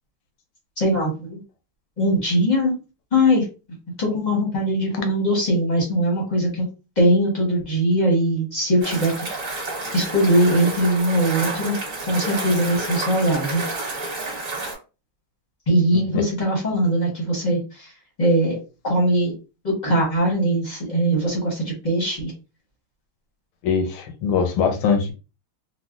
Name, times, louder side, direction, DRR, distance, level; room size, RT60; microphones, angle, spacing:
voice 1, 0.8-1.4 2.0-2.7 3.1-3.5 4.0-6.7 7.0-9.2 9.9-11.8 12.1-13.6 15.7-17.9 18.2-18.6 18.8-19.3 19.6-22.3, equal, 40° left, 0.6 m, -21 dB
sound 1, 8.8-14.7, right 2 dB, 45° right, 1.4 m, -30 dB
voice 2, 23.6-25.1, left 6 dB, 90° left, 1.6 m, -22 dB
4.1 x 2.1 x 2.4 m
omnidirectional pair, 2.3 m